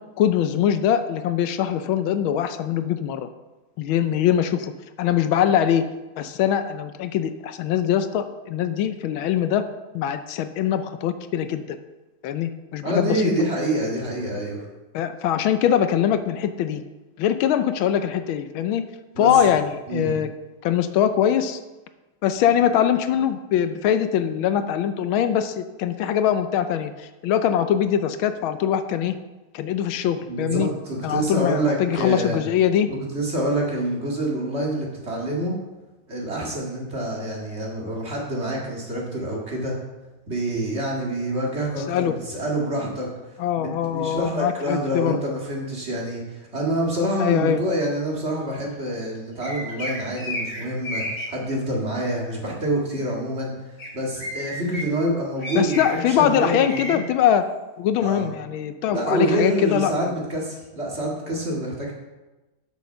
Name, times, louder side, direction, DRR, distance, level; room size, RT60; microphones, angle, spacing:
voice 1, 0.2-3.3 3.8-4.7 5.0-5.8 6.2-9.6 9.9-11.8 12.2-13.3 14.9-16.8 17.2-18.8 19.2-20.3 20.6-21.6 22.2-29.1 29.5-30.7 31.0-32.9 41.9-42.2 43.4-45.2 47.2-47.6 55.5-57.5 57.8-60.1, left 9 dB, 80° left, 10 dB, 1.4 m, -22 dB
voice 2, 12.8-14.7 19.2-19.4 19.9-20.1 30.3-32.4 32.9-35.6 36.1-39.7 40.3-43.1 43.6-57.0 58.0-58.3 58.9-61.9, right 1 dB, 30° right, -2 dB, 2.1 m, -26 dB
sound 1, 49.4-51.2 53.8-53.9 54.2-54.8 55.4-56.1 56.5-56.9, left 1 dB, 30° left, 4.1 m, -32 dB
8.2 x 6.4 x 6.7 m, 1.1 s
omnidirectional pair, 2.3 m